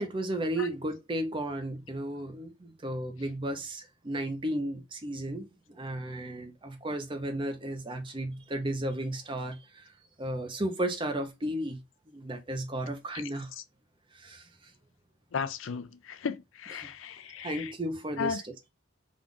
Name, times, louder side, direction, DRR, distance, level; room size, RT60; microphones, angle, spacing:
voice 1, 0.0-9.9 10.2-11.8 12.1-13.5 14.1-14.7 16.8-16.9 17.4-18.7, right 1 dB, 25° right, 0.7 m, -34 dB
voice 2, 15.3-17.7 18.2-18.4, left 6 dB, 75° left, 0.5 m, -35 dB
3.6 x 2.4 x 3.6 m
head